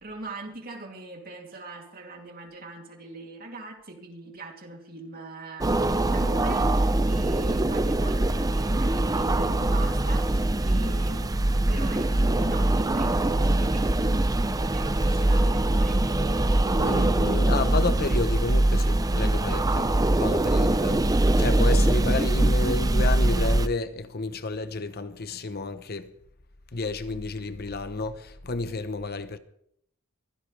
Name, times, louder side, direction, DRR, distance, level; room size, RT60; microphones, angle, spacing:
voice 1, 0.0-13.3 13.6-14.2 14.7-16.0, right 2 dB, 45° right, 2.9 m, -41 dB
sound 1, 5.6-23.7, right 1 dB, 20° right, 0.6 m, -23 dB
voice 2, 16.8-21.0 21.4-26.1 26.7-29.4, left 3 dB, 50° left, 0.9 m, -31 dB
23.5 x 16.0 x 3.4 m
head